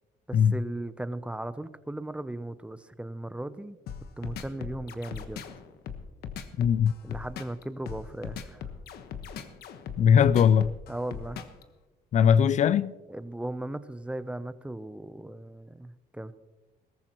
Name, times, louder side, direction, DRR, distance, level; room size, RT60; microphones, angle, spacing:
voice 1, 0.3-3.8 4.2-5.4 7.0-8.7 10.9-11.4 13.1-16.3, right 1 dB, 5° right, 0.6 m, -37 dB
sound 1, 3.9-11.6, left 8 dB, 70° left, 1.3 m, -39 dB
voice 2, 6.6-6.9 10.0-10.7 12.1-12.9, left 8 dB, 45° left, 0.4 m, -20 dB
21.5 x 14.0 x 3.0 m
cardioid pair, 110°, 17 cm